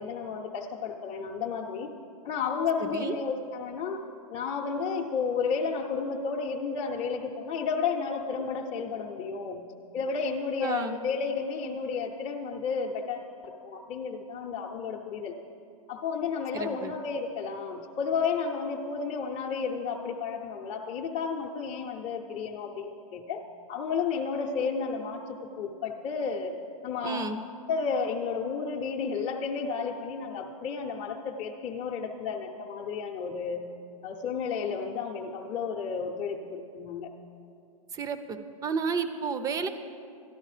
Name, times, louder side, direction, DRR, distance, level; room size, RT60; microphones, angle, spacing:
voice 1, 0.0-1.9 2.2-4.0 4.3-9.7 9.9-15.3 15.9-23.4 23.7-26.6 26.8-27.2 27.7-33.7 34.0-37.1, left 5 dB, 30° left, -2 dB, 0.8 m, -32 dB
voice 2, 10.6-11.0 16.5-16.9 27.0-27.4 37.9-39.7, right 5 dB, 20° right, 10 dB, 0.6 m, -31 dB
13.0 x 11.5 x 5.0 m, 2.5 s
hypercardioid pair, 135°, 19 cm